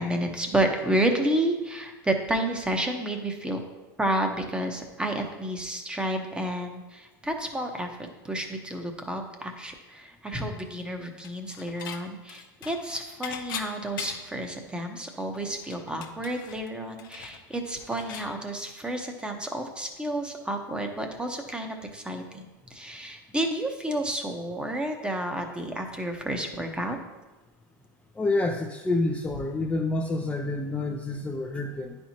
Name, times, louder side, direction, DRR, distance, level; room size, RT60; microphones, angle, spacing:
voice 1, 0.0-3.6 4.0-22.4 22.7-27.0, right 1 dB, 10° right, 4 dB, 0.9 m, -30 dB
Dishes pots and pans / Chink clink, 11.2-12.0 12.3-14.4 14.8-14.9 15.2-18.3, left 8 dB, 70° left, 0.8 m, -40 dB
voice 2, 28.2-32.0, left 2 dB, 10° left, 1 dB, 0.5 m, -28 dB
10.0 x 4.4 x 2.9 m, 1.1 s
hypercardioid pair, 105°, 11 cm